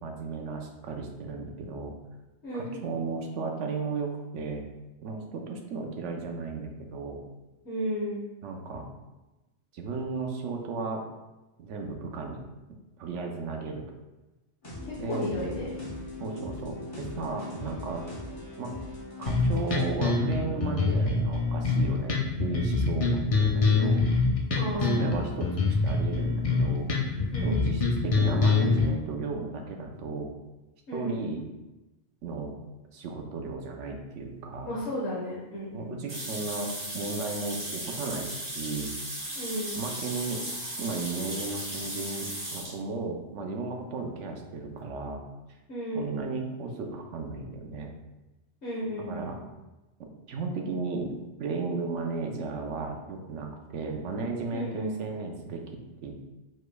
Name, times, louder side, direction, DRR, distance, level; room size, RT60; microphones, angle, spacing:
voice 1, 0.0-1.9 2.5-4.6 5.0-7.2 8.4-8.9 9.7-11.0 11.6-12.5 13.0-13.8 15.0-15.3 16.2-18.1 18.6-18.7 19.2-22.1 22.4-24.0 24.7-30.3 30.9-31.4 32.2-32.5 32.9-34.7 35.7-38.9 39.8-40.4 40.8-45.2 45.9-47.9 49.0-49.4 50.0-55.6 56.0-56.1, right 4 dB, 75° right, 3 dB, 1.0 m, -35 dB
voice 2, 2.4-2.8 7.6-8.2 15.1-15.7 24.5-25.2 27.3-27.7 30.9-31.2 34.6-36.0 39.3-39.8 45.7-46.1 48.6-49.3 54.5-54.9, equal, 70° left, -8 dB, 1.4 m, -33 dB
sound 1, 14.6-20.0, left 2 dB, 30° left, 1.2 m, -39 dB
sound 2, 19.3-28.9, left 3 dB, 45° left, 0.4 m, -25 dB
sound 3, 36.1-42.8, right 1 dB, 50° right, 1.6 m, -36 dB
4.8 x 4.4 x 2.3 m, 1.1 s
omnidirectional pair, 1.2 m